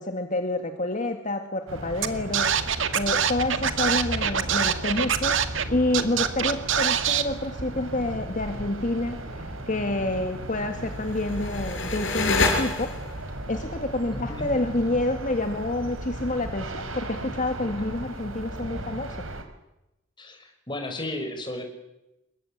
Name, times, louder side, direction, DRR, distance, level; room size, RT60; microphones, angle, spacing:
voice 1, 0.0-2.6 2.9-13.0 13.5-19.3, left 2 dB, 40° left, 6 dB, 2.0 m, -28 dB
sound 1, 1.7-19.4, right 1 dB, 90° right, 4.7 m, -36 dB
Scratching (performance technique), 2.0-2.1 2.3-5.6 5.9-7.2, right 8 dB, 65° right, 2.1 m, -24 dB
sound 2, 10.9-13.3, left 3 dB, 65° left, 5.8 m, -27 dB
voice 2, 14.1-14.5 17.8-17.9 20.2-21.6, left 1 dB, 25° left, 5 dB, 5.8 m, -34 dB
28.0 x 23.0 x 8.9 m, 0.92 s
head